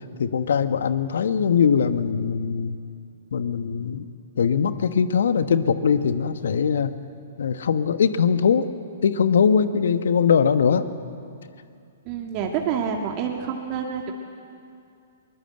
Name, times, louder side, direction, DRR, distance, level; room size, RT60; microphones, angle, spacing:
voice 1, 0.2-2.8 3.3-4.1 4.4-6.9 7.4-8.7 9.0-10.9, left 6 dB, 65° left, 11 dB, 1.2 m, -21 dB
voice 2, 12.0-14.1, right 7 dB, 35° right, 1 dB, 2.1 m, -27 dB
23.0 x 21.0 x 7.9 m, 2.4 s
figure-of-eight pair, 115°, 0 cm